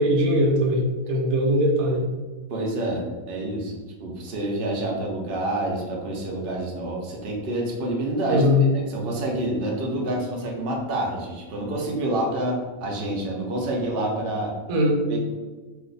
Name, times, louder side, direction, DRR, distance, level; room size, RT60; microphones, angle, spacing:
voice 1, 0.0-2.0 8.3-8.7 14.7-15.0, left 1 dB, 85° right, 0 dB, 1.2 m, -20 dB
voice 2, 2.5-8.4 8.7-14.5 15.1-15.2, right 1 dB, 50° right, -1 dB, 0.8 m, -28 dB
2.6 x 2.5 x 3.9 m, 1.3 s
omnidirectional pair, 1.5 m